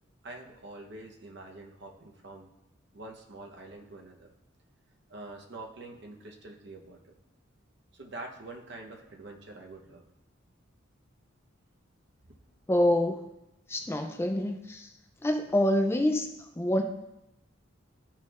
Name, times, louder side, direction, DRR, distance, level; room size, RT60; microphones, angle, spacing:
voice 1, 0.2-2.5 2.9-4.3 5.1-7.1 7.9-10.0 12.2-12.4, right 2 dB, 60° right, 1 dB, 0.8 m, -45 dB
voice 2, 12.7-13.2 13.7-14.9 15.2-16.8, left 1 dB, 10° left, 4 dB, 0.3 m, -26 dB
12.5 x 4.3 x 2.4 m, 0.92 s
head